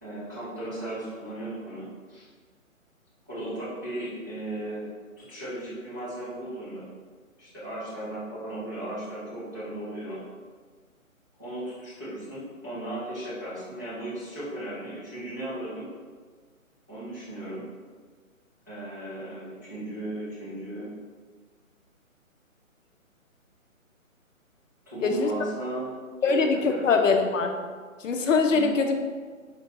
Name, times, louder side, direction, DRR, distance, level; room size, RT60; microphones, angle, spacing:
voice 1, 0.0-2.3 3.3-4.9 5.2-6.9 7.4-10.2 11.4-15.9 16.9-17.6 18.7-20.9 24.9-25.9 26.2-27.0 28.5-28.6, right 1 dB, 15° right, -13 dB, 0.5 m, -36 dB
voice 2, 26.2-27.5 28.0-28.9, left 4 dB, 65° left, 5 dB, 0.5 m, -22 dB
4.3 x 2.6 x 2.8 m, 1.6 s
figure-of-eight pair, 145°, 42 cm